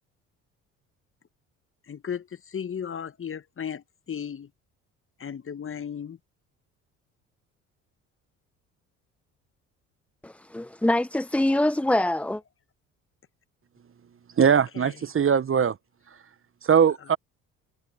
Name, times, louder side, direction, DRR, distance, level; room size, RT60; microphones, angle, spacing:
voice 1, 1.9-4.5 5.2-6.2 14.7-14.9, left 8 dB, 35° left, 1.4 m, -35 dB
voice 2, 10.2-12.4, left 1 dB, 5° left, 0.7 m, -24 dB
voice 3, 14.4-15.8 16.6-17.2, right 7 dB, 35° right, 1.4 m, -20 dB
hypercardioid pair, 55°, 37 cm